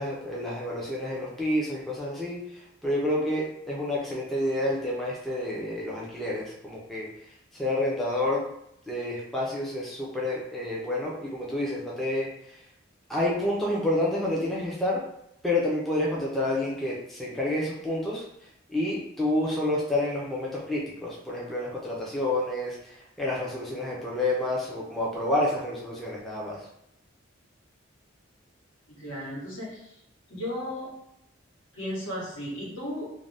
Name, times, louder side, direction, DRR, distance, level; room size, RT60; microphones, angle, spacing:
voice 1, 0.0-7.1 7.5-8.4 8.9-12.6 13.1-15.0 15.4-26.7, left 1 dB, ahead, -5 dB, 0.4 m, -29 dB
voice 2, 28.9-29.9 30.3-30.9 31.7-33.1, left 1 dB, 80° left, -5 dB, 1.1 m, -35 dB
2.5 x 2.0 x 3.2 m, 0.78 s
head